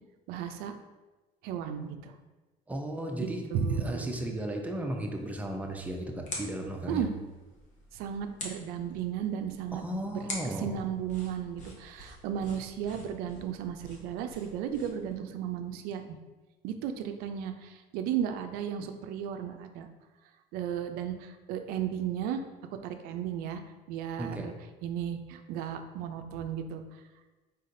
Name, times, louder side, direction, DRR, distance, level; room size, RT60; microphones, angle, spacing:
voice 1, 0.3-0.7 1.4-2.1 3.2-4.2 6.9-7.1 7.9-9.8 10.1-16.2 16.6-19.9 20.5-22.4 22.7-23.6 23.9-24.5 24.8-26.8, right 8 dB, 80° right, 7 dB, 0.4 m, -34 dB
voice 2, 2.7-3.4 3.7-7.0 9.7-10.8 24.2-24.5, right 1 dB, 10° right, 2 dB, 0.6 m, -35 dB
sound 1, 5.1-15.2, left 2 dB, 55° left, 1.1 m, -46 dB
4.0 x 3.8 x 2.6 m, 1.2 s
supercardioid pair, 90°, 15 cm